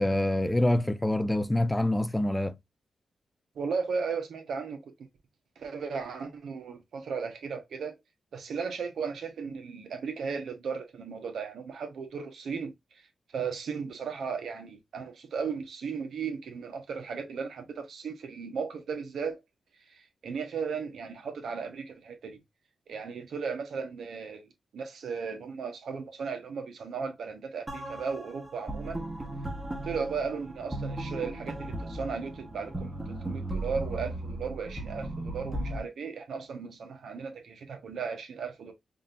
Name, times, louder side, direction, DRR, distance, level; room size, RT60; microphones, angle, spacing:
voice 1, 0.0-2.5, left 1 dB, 10° left, 0.5 m, -26 dB
voice 2, 3.5-4.9 5.6-8.0 8.3-13.1 13.3-19.4 19.9-22.4 22.9-29.1 29.8-38.7, right 5 dB, 80° right, 1.2 m, -36 dB
sound 1, 27.7-35.8, right 1 dB, 20° right, 1.2 m, -36 dB
5.2 x 2.8 x 2.5 m
cardioid pair, 65°, 0 cm